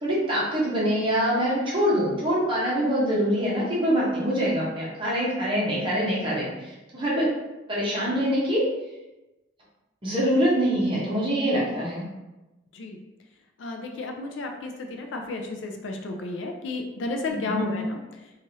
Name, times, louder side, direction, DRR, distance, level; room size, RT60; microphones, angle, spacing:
voice 1, 0.0-7.3 7.7-8.6 10.0-12.0 17.3-17.7, equal, 25° right, -6 dB, 0.8 m, -24 dB
voice 2, 13.6-18.0, left 3 dB, 70° left, 3 dB, 0.4 m, -32 dB
2.7 x 2.4 x 3.0 m, 1.0 s
head